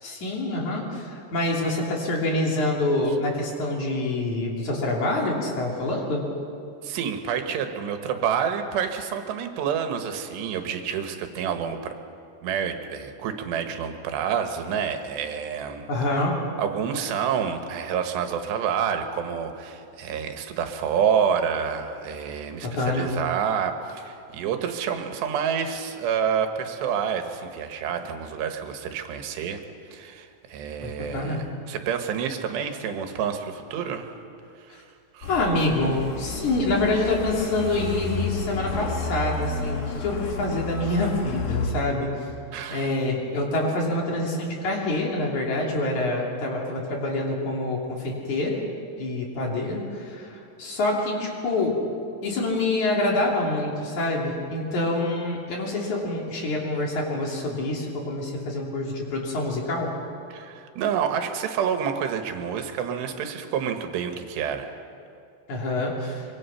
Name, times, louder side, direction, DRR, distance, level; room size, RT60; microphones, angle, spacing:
voice 1, 0.0-6.3 15.9-16.4 22.6-23.1 30.8-31.5 35.3-42.1 42.7-48.6 49.0-51.8 52.2-59.9 65.5-66.3, left 2 dB, 45° left, -2 dB, 4.1 m, -26 dB
voice 2, 6.8-12.0 12.4-15.9 16.6-29.6 29.9-34.1 34.6-34.9 35.1-35.3 42.5-42.9 60.3-64.7, right 7 dB, 80° right, 6 dB, 3.5 m, -28 dB
Truck, 35.2-41.7, left 4 dB, 65° left, 3.8 m, -31 dB
24.5 x 23.5 x 5.7 m, 2.5 s
omnidirectional pair, 4.9 m